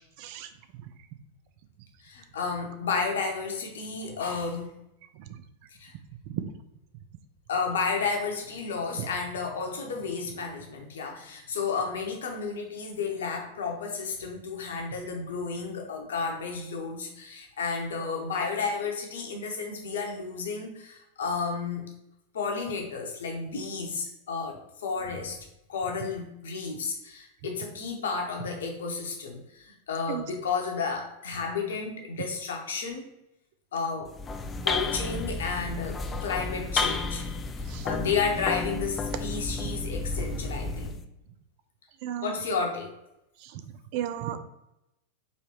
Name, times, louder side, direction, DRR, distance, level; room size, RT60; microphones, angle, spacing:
voice 1, 0.2-0.5 0.8-0.9 5.1-5.4 6.2-6.5 8.9-9.1 30.1-30.2 37.7-37.9 39.5-39.6 42.0-42.3 43.4-44.4, right 11 dB, 45° right, 9 dB, 0.4 m, -35 dB
voice 2, 2.0-4.7 5.8-5.9 7.5-21.8 22.3-25.4 25.7-33.1 33.7-34.1 34.6-37.2 37.6-41.0 42.2-42.9, left 5 dB, 60° left, 1 dB, 0.9 m, -32 dB
sound 1, 34.1-41.0, left 4 dB, 20° left, 0.3 m, -32 dB
4.4 x 3.3 x 3.1 m, 0.87 s
figure-of-eight pair, 90°, 0 cm